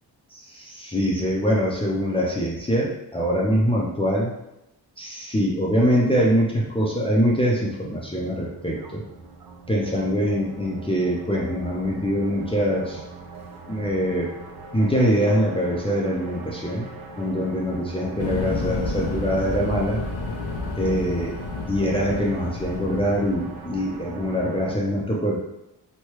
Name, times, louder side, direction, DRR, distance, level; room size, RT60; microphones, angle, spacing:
voice 1, 0.3-4.3 5.0-9.0 9.7-13.0 13.7-14.3 14.7-16.9 17.2-20.0 20.8-21.3 21.7-25.4, equal, 15° left, -4 dB, 0.5 m, -23 dB
sound 1, 5.8-24.7, right 4 dB, 55° right, 0.5 m, -41 dB
sound 2, 18.2-24.0, left 3 dB, 90° left, 0.6 m, -31 dB
3.1 x 2.3 x 3.0 m, 0.89 s
cardioid pair, 85°, 43 cm